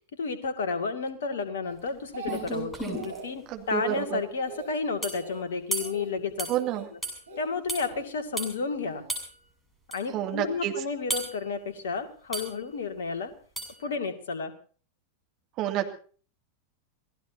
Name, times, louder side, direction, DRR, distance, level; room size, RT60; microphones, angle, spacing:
voice 1, 0.1-6.5 7.4-9.0 9.9-13.3 13.8-14.5, left 4 dB, 60° left, 8 dB, 2.3 m, -32 dB
Speech, 1.6-2.6 2.9-3.3 3.7-4.1 4.4-4.7 5.1-5.4 5.8-6.1 6.5-6.9 7.3-8.1 8.8-9.1, right 5 dB, 65° right, 3.7 m, -42 dB
sound 1, 1.9-2.0 2.3-3.2 5.0-5.2 5.7-6.0 6.4-6.6 7.0-7.2 7.7-7.9 8.4-8.5 9.1-9.3 9.9-10.0 11.1-11.4 12.3-12.6 13.6-13.8, right 1 dB, 5° left, 7.1 m, -33 dB
voice 2, 3.5-4.2 6.5-6.8 10.1-10.7 15.6-15.9, right 12 dB, 40° right, 4 dB, 2.5 m, -29 dB
28.0 x 18.0 x 2.8 m, 0.42 s
figure-of-eight pair, 90°, 0 cm